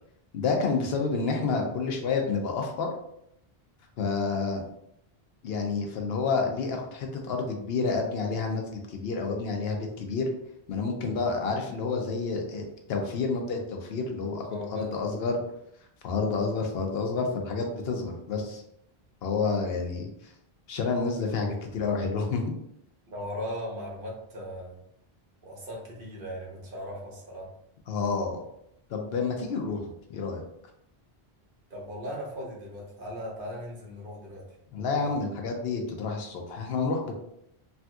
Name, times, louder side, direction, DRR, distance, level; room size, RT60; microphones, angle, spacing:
voice 1, 0.3-2.9 4.0-4.6 5.4-10.3 10.7-15.4 16.0-18.6 19.2-20.3 20.7-22.4 27.9-28.4 28.9-29.8 30.1-30.4 34.7-37.2, left 4 dB, 75° left, 2 dB, 0.8 m, -29 dB
voice 2, 14.5-15.2 23.1-24.8 25.4-27.5 31.7-34.5 35.0-35.2, equal, 60° right, -3 dB, 1.0 m, -38 dB
3.4 x 2.7 x 2.3 m, 0.76 s
omnidirectional pair, 1.1 m